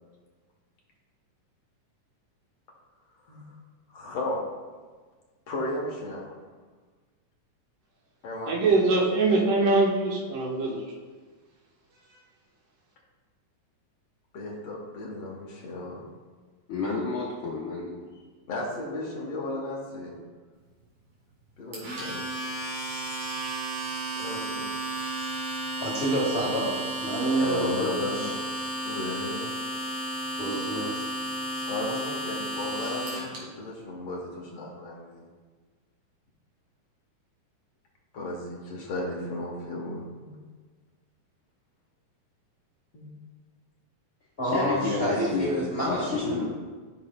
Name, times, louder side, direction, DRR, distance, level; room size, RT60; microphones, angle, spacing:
voice 1, 3.9-4.4 5.5-6.3 8.2-9.0 14.3-16.1 18.5-20.1 21.6-22.2 24.1-24.7 27.4-28.4 28.8-29.5 31.7-35.3 38.1-40.4 42.9-43.1, left 2 dB, 60° left, -2 dB, 1.8 m, -35 dB
voice 2, 8.5-10.8, right 3 dB, 75° right, -2 dB, 2.8 m, -23 dB
voice 3, 16.7-18.1 44.4-45.5 45.8-46.4, left 4 dB, 90° left, -4 dB, 1.1 m, -30 dB
Domestic sounds home sounds, 21.7-33.4, right 1 dB, 60° right, 3.2 m, -33 dB
voice 4, 25.8-28.3 30.4-31.1 31.6-31.8 44.4-46.4, right 1 dB, 40° left, -5 dB, 0.9 m, -28 dB
13.5 x 6.3 x 2.2 m, 1.4 s
omnidirectional pair, 3.7 m